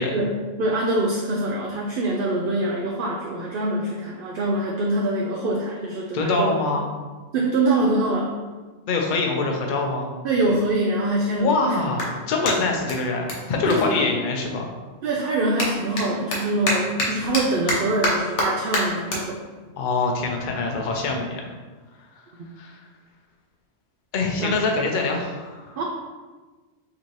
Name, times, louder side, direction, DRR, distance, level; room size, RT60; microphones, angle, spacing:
voice 1, 0.1-6.5 7.3-8.3 10.2-11.7 13.7-14.1 15.0-19.4 24.4-24.7 25.8-25.9, right 2 dB, 60° right, -2 dB, 0.7 m, -24 dB
voice 2, 6.1-6.9 8.9-10.1 11.4-14.7 19.8-21.5 22.6-22.8 24.1-25.8, left 3 dB, 55° left, 1 dB, 0.7 m, -24 dB
Clapping, 9.9-10.0 10.6-14.7 15.0-21.6, left 1 dB, 85° left, 1.2 m, -30 dB
5.0 x 2.8 x 3.0 m, 1.3 s
omnidirectional pair, 1.2 m